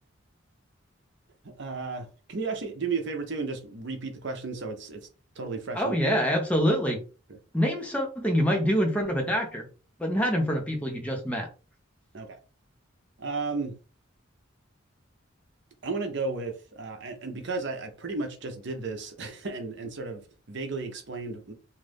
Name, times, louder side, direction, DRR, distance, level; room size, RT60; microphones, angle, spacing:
voice 1, 1.4-5.1 5.4-6.0 7.3-7.4 12.1-12.4 13.2-13.8 15.8-21.5, right 4 dB, 60° right, 0.7 m, -34 dB
voice 2, 5.7-7.0 7.5-9.6 10.0-11.5, equal, 5° left, 0.7 m, -25 dB
2.6 x 2.5 x 3.4 m
head